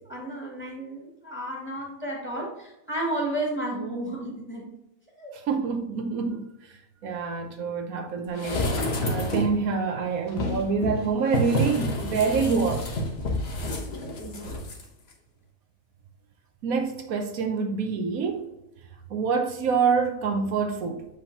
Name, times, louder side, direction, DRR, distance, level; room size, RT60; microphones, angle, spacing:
voice 1, 0.0-4.7 5.2-5.3 14.2-14.6, right 1 dB, 10° left, 2.3 m, -32 dB
voice 2, 5.3-6.5 7.0-12.9 16.6-18.5 19.1-21.1, right 5 dB, 80° right, 1.2 m, -26 dB
sound 1, 8.4-9.6 10.3-14.8 15.1-15.2, left 1 dB, 50° left, 1.2 m, -29 dB
7.3 x 5.1 x 2.8 m
omnidirectional pair, 1.5 m